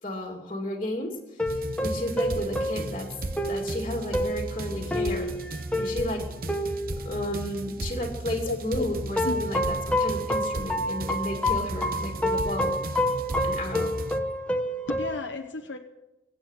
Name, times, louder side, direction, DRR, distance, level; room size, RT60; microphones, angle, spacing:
voice 1, 0.0-3.1 3.5-5.3 5.7-6.3 7.0-12.8 13.4-13.9, left 1 dB, 30° left, 1 dB, 2.5 m, -33 dB
sound 1, 1.4-8.0 9.2-15.2, left 1 dB, 5° left, 1.0 m, -29 dB
sound 2, 1.5-14.2, right 2 dB, 50° right, 0.9 m, -35 dB
voice 2, 8.4-8.9 9.2-9.5 14.9-15.8, left 3 dB, 85° left, 4 dB, 1.0 m, -33 dB
25.0 x 9.0 x 6.5 m, 0.95 s
head